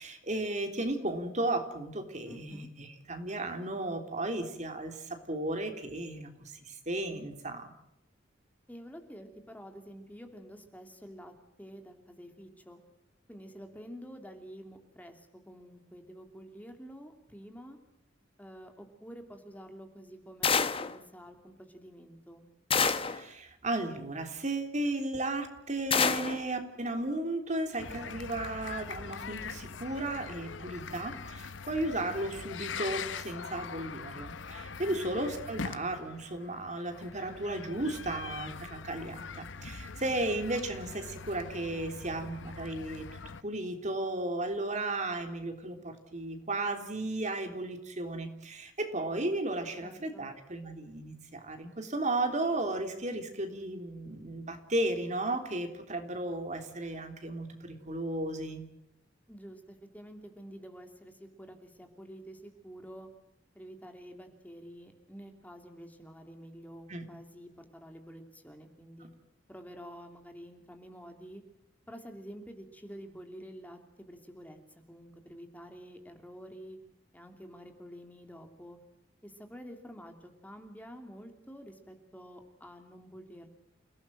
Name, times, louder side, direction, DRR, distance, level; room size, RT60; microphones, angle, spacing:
voice 1, 0.0-7.7 22.9-58.7 66.9-67.0, right 2 dB, 40° right, 5 dB, 3.5 m, -35 dB
voice 2, 2.2-2.7 8.7-11.3 11.6-12.8 13.3-17.8 18.4-22.5 34.9-35.2 49.8-50.3 59.3-63.1 63.5-69.1 69.5-71.4 71.9-76.8 77.1-78.8 79.2-83.5, equal, 10° left, 5 dB, 2.9 m, -49 dB
sound 1, 20.4-21.0 22.7-23.2 25.9-26.4, left 5 dB, 30° left, 1.1 m, -27 dB
sound 2, 27.8-43.4, left 5 dB, 75° left, 0.9 m, -42 dB
29.5 x 17.5 x 7.7 m, 0.85 s
head